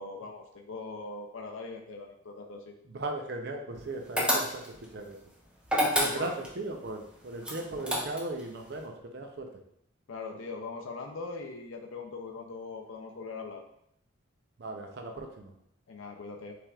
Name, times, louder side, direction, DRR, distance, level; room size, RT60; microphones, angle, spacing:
voice 1, 0.0-2.7 6.0-6.4 10.1-13.6 15.9-16.6, left 3 dB, 75° left, 2 dB, 0.5 m, -41 dB
voice 2, 2.9-5.2 5.9-9.5 14.6-15.5, right 2 dB, 50° right, 3 dB, 0.6 m, -37 dB
sound 1, 4.2-4.8 5.6-6.5 7.4-8.4, equal, 5° right, 0.6 m, -28 dB
5.9 x 3.4 x 2.4 m, 0.74 s
head